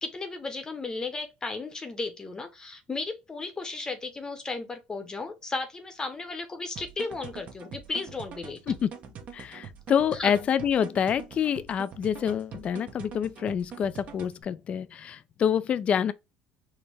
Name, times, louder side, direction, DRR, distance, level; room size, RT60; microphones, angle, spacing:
voice 1, 0.0-8.6 10.1-10.3, left 3 dB, 25° left, 0.8 m, -35 dB
sound 1, 6.8-14.4, right 7 dB, 50° right, 0.9 m, -44 dB
voice 2, 9.3-16.1, left 8 dB, 40° left, 0.3 m, -27 dB
4.3 x 2.1 x 3.3 m
supercardioid pair, 95°, 3 cm